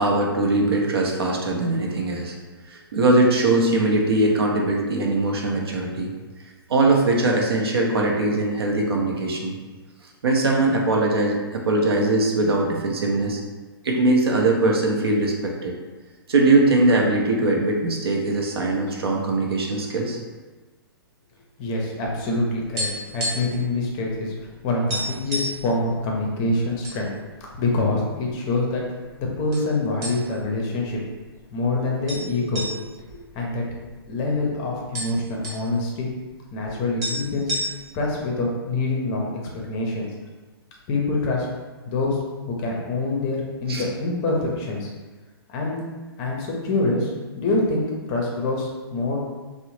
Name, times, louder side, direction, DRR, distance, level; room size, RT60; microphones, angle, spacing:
voice 1, 0.0-2.3 2.7-6.1 6.7-9.5 10.2-13.4 13.8-15.7 16.3-20.2 43.7-43.8, right 2 dB, 70° right, 0 dB, 0.6 m, -21 dB
voice 2, 21.6-27.1 27.6-28.8 29.2-31.0 31.5-33.6 34.1-36.1 36.5-37.5 37.9-39.3 39.7-40.1 40.9-41.5 41.8-42.2 42.5-44.9 45.5-45.8 46.2-49.2, left 2 dB, 30° left, -1 dB, 0.5 m, -25 dB
sound 1, 22.8-23.7 23.9-24.1 24.5-24.6 24.9-25.6 26.3-27.0 27.4-27.5 28.2-28.8 29.5-29.7 30.0-30.5 30.9-31.0 32.1-34.1 34.4-34.5 34.7-35.7 36.7-36.8 37.0-38.1, equal, 25° right, 0.8 m, -30 dB
2.6 x 2.0 x 3.0 m, 1.3 s
hypercardioid pair, 130°, 13 cm